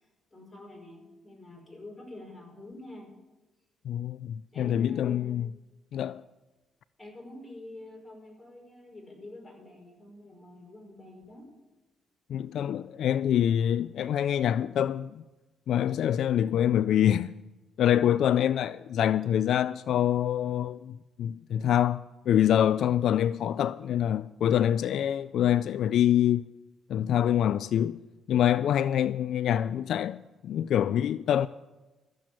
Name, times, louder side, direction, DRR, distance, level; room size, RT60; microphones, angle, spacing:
voice 1, 0.3-3.1 4.5-5.5 7.0-11.5, left 1 dB, 15° left, 5.4 m, -46 dB
voice 2, 3.9-5.5 5.9-6.2 12.3-15.2 15.7-17.3 17.8-20.9 21.2-26.4 26.9-28.0 28.3-31.5, left 10 dB, 70° left, 0.3 m, -25 dB
14.0 x 7.7 x 8.7 m
cardioid pair, 90°, 0 cm